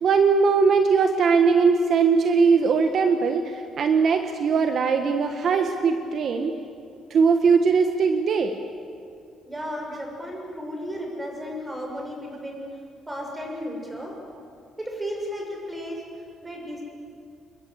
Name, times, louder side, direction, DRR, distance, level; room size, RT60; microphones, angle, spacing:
voice 1, 0.0-6.5 7.1-8.6, right 5 dB, 50° right, 6 dB, 1.5 m, -20 dB
voice 2, 9.5-12.8 13.1-14.2 14.8-16.0 16.4-16.8, equal, 10° right, 1 dB, 6.8 m, -34 dB
28.5 x 22.0 x 8.2 m, 2.3 s
cardioid pair, 130°, 0 cm